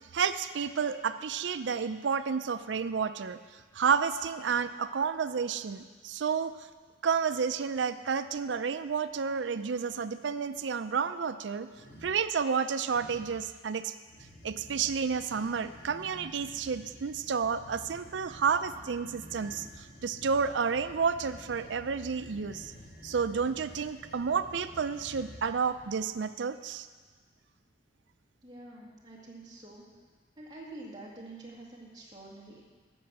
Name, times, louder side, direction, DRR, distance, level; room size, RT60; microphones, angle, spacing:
voice 1, 0.1-3.4 3.7-6.6 7.0-11.7 12.0-13.9 14.4-22.7 23.0-26.9, right 6 dB, 85° right, 12 dB, 0.5 m, -30 dB
sound 1, 11.7-12.2 12.8-13.5 14.0-26.1, equal, 55° left, 2.1 m, -50 dB
voice 2, 28.4-29.9 30.4-32.6, right 2 dB, 25° right, -4 dB, 2.1 m, -47 dB
10.5 x 6.3 x 7.5 m, 1.4 s
head